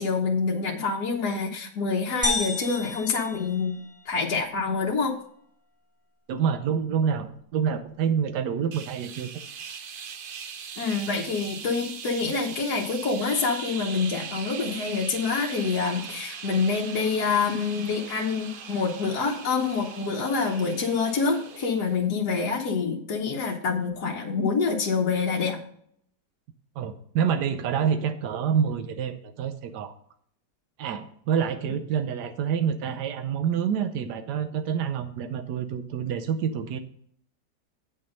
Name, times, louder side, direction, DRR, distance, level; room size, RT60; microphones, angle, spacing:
voice 1, 0.0-3.8 4.0-5.1 10.8-25.6, left 4 dB, 70° left, -1 dB, 1.6 m, -26 dB
sound 1, 2.2-4.2, left 2 dB, 10° left, 2.1 m, -31 dB
voice 2, 6.3-9.5 26.8-29.9 30.8-36.8, right 7 dB, 90° right, 8 dB, 1.3 m, -27 dB
sound 2, 8.7-22.0, right 7 dB, 60° right, 0.5 m, -40 dB
8.7 x 6.1 x 5.3 m, 0.64 s
omnidirectional pair, 1.7 m